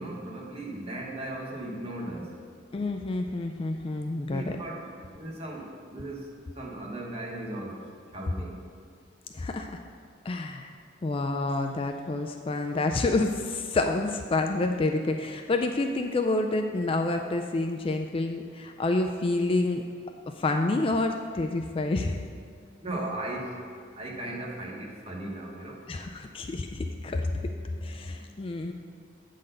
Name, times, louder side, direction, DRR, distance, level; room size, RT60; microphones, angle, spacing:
voice 1, 0.0-2.2 4.3-4.9 5.2-6.3 6.6-7.7 8.1-8.5 22.8-23.4 24.0-25.8, right 1 dB, 30° right, -2 dB, 1.2 m, -36 dB
voice 2, 2.7-4.6 9.3-9.8 10.3-10.7 11.0-19.8 20.4-22.3 25.9-27.3 27.8-28.7, left 2 dB, 30° left, 4 dB, 0.3 m, -28 dB
8.5 x 3.9 x 6.6 m, 2.1 s
head